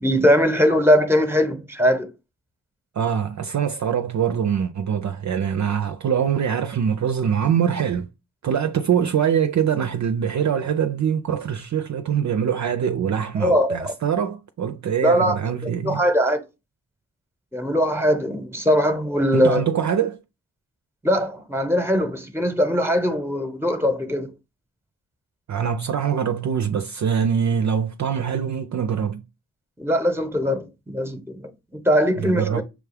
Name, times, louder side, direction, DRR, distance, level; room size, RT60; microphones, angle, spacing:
voice 1, 0.0-2.1 13.4-13.9 15.0-15.4 15.6-16.4 17.5-19.6 21.0-24.3 29.8-32.6, equal, 5° right, 0.9 m, -21 dB
voice 2, 3.0-8.1 8.4-16.0 19.3-20.2 25.5-29.2 32.2-32.6, right 8 dB, 50° right, 0.5 m, -23 dB
6.2 x 2.3 x 3.4 m
cardioid pair, 50°, 37 cm